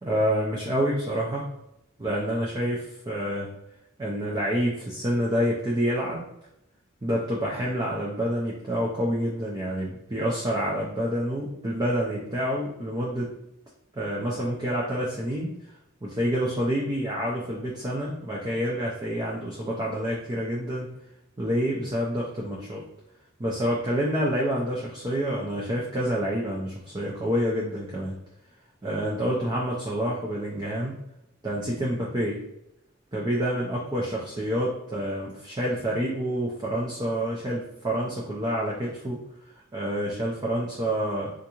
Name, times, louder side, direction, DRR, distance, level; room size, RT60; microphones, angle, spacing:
voice 1, 0.0-1.5 2.0-3.5 4.0-6.3 7.0-13.3 13.9-15.7 16.0-20.9 21.4-22.8 23.4-28.1 28.8-30.9 31.4-32.4 33.1-39.2 39.7-41.3, equal, 20° right, -4 dB, 0.5 m, -28 dB
3.5 x 2.5 x 2.9 m, 0.84 s
head